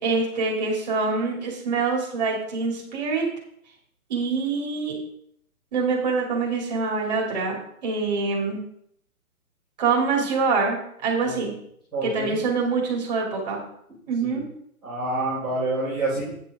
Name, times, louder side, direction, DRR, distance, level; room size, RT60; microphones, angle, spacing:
voice 1, 0.0-3.2 4.1-5.0 5.7-7.6 7.8-8.6 9.8-11.5 12.0-13.6 14.1-14.4, right 4 dB, 30° right, -2 dB, 2.6 m, -25 dB
voice 2, 11.9-12.4 14.2-14.4 14.8-16.3, right 2 dB, ahead, -23 dB, 0.7 m, -27 dB
9.5 x 6.1 x 4.9 m, 0.70 s
hypercardioid pair, 175°, 44 cm